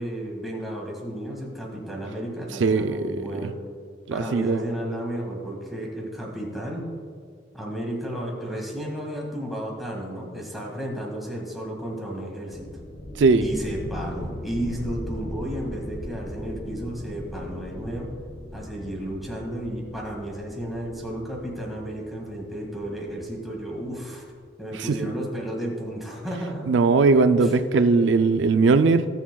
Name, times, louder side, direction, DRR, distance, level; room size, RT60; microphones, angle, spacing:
voice 1, 0.0-3.5 4.1-6.9 7.5-12.7 13.4-18.1 18.5-24.3 24.6-26.7 27.4-27.5, right 1 dB, ahead, -3 dB, 1.9 m, -33 dB
voice 2, 2.6-3.2 3.4-3.5 4.1-4.6 13.2-13.4 24.7-25.0 26.7-29.1, right 4 dB, 85° right, 10 dB, 0.4 m, -19 dB
sound 1, 12.5-24.0, left 1 dB, 85° left, 1.4 m, -39 dB
19.5 x 7.1 x 2.3 m, 2.1 s
head